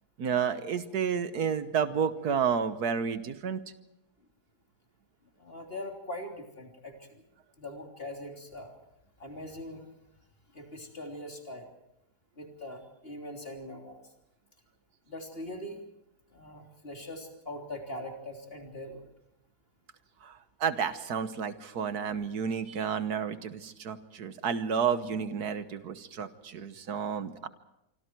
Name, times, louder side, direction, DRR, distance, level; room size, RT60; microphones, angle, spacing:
voice 1, 0.2-3.6 20.2-27.5, right 7 dB, 75° right, 11 dB, 1.6 m, -31 dB
voice 2, 5.4-7.2 7.6-8.7 9.2-9.8 10.5-11.7 12.4-14.0 15.1-15.8 16.3-19.0, left 1 dB, 35° left, 2 dB, 3.5 m, -41 dB
26.0 x 25.5 x 4.6 m, 0.83 s
omnidirectional pair, 1.7 m